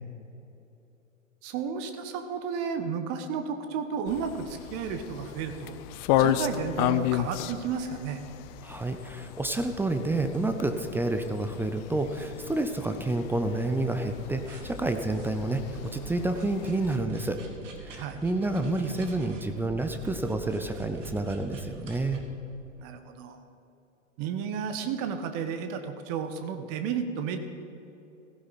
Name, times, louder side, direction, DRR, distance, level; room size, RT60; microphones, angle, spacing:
voice 1, 1.4-5.8 6.2-8.2 18.0-18.2 22.8-23.4 24.2-27.4, right 6 dB, 40° right, 8 dB, 1.2 m, -32 dB
sound 1, 4.1-17.0, left 12 dB, 35° left, 0.6 m, -33 dB
voice 2, 8.6-17.4 17.8-22.2, right 2 dB, 5° right, 7 dB, 0.5 m, -29 dB
sound 2, 13.9-22.2, right 3 dB, 70° right, 2.3 m, -45 dB
16.0 x 14.5 x 4.1 m, 2.9 s
figure-of-eight pair, 100°, 39 cm